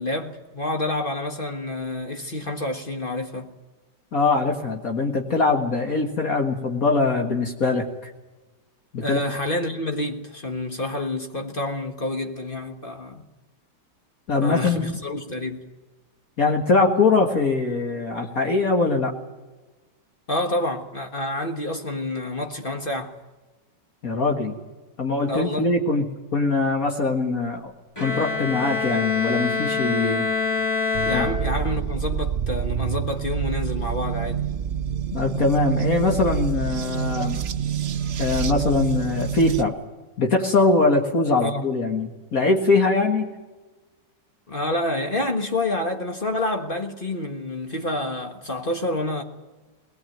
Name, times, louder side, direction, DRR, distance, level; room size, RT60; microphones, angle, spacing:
voice 1, 0.0-3.5 9.0-13.3 14.4-15.7 20.3-23.2 25.3-25.7 31.0-34.4 41.4-41.7 44.5-49.2, left 1 dB, 30° left, 1.5 m, -28 dB
voice 2, 4.1-8.1 8.9-9.2 14.3-15.0 16.4-19.1 24.0-24.6 25.0-27.7 28.0-30.3 31.1-31.3 35.1-37.4 38.2-39.8 40.2-43.3, left 3 dB, 55° left, 2.2 m, -22 dB
Bowed string instrument, 28.0-32.0, left 4 dB, 15° left, 3.3 m, -26 dB
sound 1, 30.9-39.6, right 9 dB, 50° right, 0.9 m, -27 dB
20.5 x 19.5 x 9.1 m
omnidirectional pair, 1.9 m